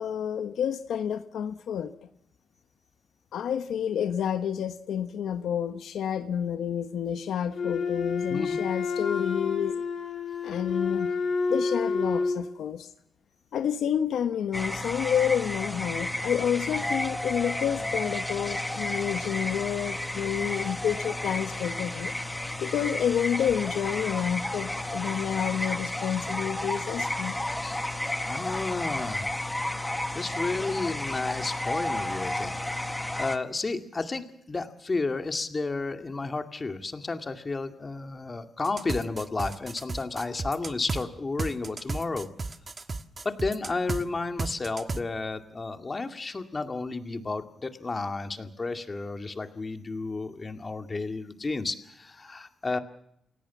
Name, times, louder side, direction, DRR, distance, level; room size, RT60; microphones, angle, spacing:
voice 1, 0.0-1.9 3.3-9.8 10.4-11.1 11.5-12.9 13.5-22.1 22.6-27.3, left 9 dB, 90° left, 1.2 m, -29 dB
Wind instrument woodwind instrument, 7.5-12.4, left 4 dB, 60° left, 5.2 m, -29 dB
sound 1, 14.5-33.4, left 1 dB, 10° left, 1.5 m, -32 dB
voice 2, 28.3-29.3 30.1-42.3 43.2-52.8, left 3 dB, 25° left, 2.2 m, -32 dB
sound 2, 38.6-41.0 41.4-44.0 44.4-45.0, right 3 dB, 30° right, 1.4 m, -33 dB
29.0 x 17.0 x 7.2 m
cardioid pair, 120°, 0 cm